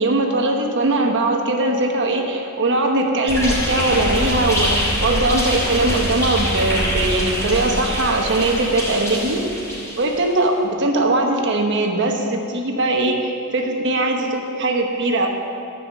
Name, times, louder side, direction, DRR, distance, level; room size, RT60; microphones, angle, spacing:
voice 1, 0.0-9.4 10.0-15.3, right 2 dB, 55° right, 2 dB, 1.0 m, -20 dB
sound 1, 3.3-10.3, equal, 15° left, 2.7 m, -24 dB
13.5 x 5.7 x 7.5 m, 2.7 s
head